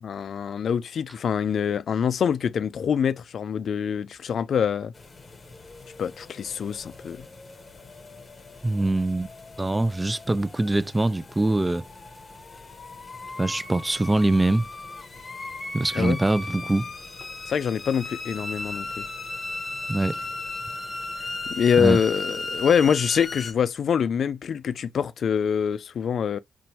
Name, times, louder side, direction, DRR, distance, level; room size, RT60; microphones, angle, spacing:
voice 1, 0.0-4.9 6.0-7.2 15.9-16.2 17.5-19.0 21.5-26.4, left 7 dB, 70° left, 0.3 m, -25 dB
sound 1, 4.9-23.5, left 2 dB, 40° left, 0.8 m, -37 dB
voice 2, 8.6-9.3 9.6-11.9 13.4-14.6 15.7-16.9 19.9-20.2 21.8-22.0, right 2 dB, 20° right, 0.4 m, -23 dB
2.7 x 2.1 x 2.9 m
supercardioid pair, 45°, 0 cm